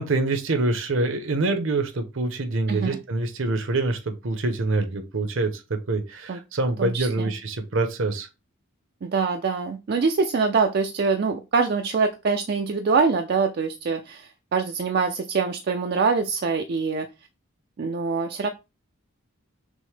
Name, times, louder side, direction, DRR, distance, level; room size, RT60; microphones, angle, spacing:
voice 1, 0.0-8.3, right 2 dB, 65° right, 0.7 m, -25 dB
voice 2, 6.8-7.3 9.0-17.1 17.8-18.5, right 5 dB, 45° right, 0.3 m, -24 dB
6.1 x 2.1 x 3.2 m
head